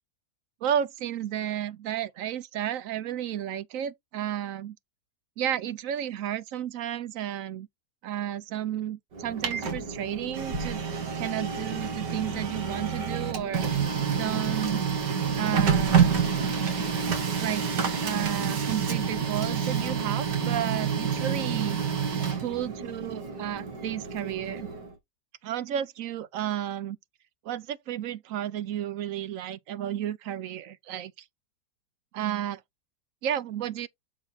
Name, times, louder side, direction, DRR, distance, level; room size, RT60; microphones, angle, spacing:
voice 1, 0.6-4.8 5.4-7.7 8.0-10.8 11.2-13.6 14.2-14.8 15.4-16.2 17.4-21.8 22.4-24.7 25.4-27.0 27.4-31.1 32.1-32.6 33.2-33.9, right 10 dB, 65° right, 0.9 m, -32 dB
Printer, 9.1-24.9, right 6 dB, 90° right, 2.3 m, -28 dB
7.3 x 4.2 x 4.1 m
omnidirectional pair, 1.8 m